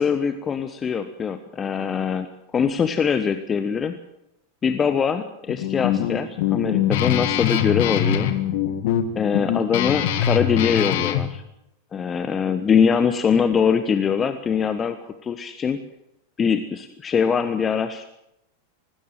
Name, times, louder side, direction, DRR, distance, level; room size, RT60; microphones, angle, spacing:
voice 1, 0.0-2.3 2.5-3.9 4.6-8.3 9.1-11.4 11.9-15.0 15.2-15.8 16.4-18.1, left 6 dB, 20° left, 10 dB, 1.2 m, -22 dB
Guitar, 5.5-11.3, left 10 dB, 50° left, 1.8 m, -23 dB
19.5 x 16.5 x 9.2 m, 0.81 s
figure-of-eight pair, 90°, 0 cm